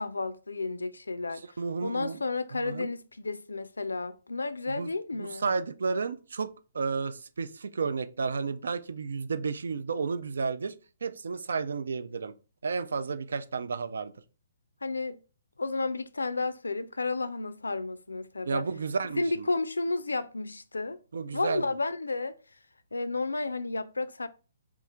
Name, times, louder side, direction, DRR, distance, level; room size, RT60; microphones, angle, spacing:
voice 1, 0.0-1.4 1.8-5.5 14.8-15.2 15.6-18.6 19.2-21.0 21.3-22.3 22.9-24.3, left 3 dB, 85° left, 0.3 m, -32 dB
voice 2, 1.6-2.2 2.5-2.9 4.7-4.9 5.2-10.7 11.0-12.3 12.6-14.1 18.4-19.5 21.1-21.7, right 4 dB, 70° right, 0.3 m, -32 dB
3.0 x 2.4 x 3.6 m
figure-of-eight pair, 135°, 0 cm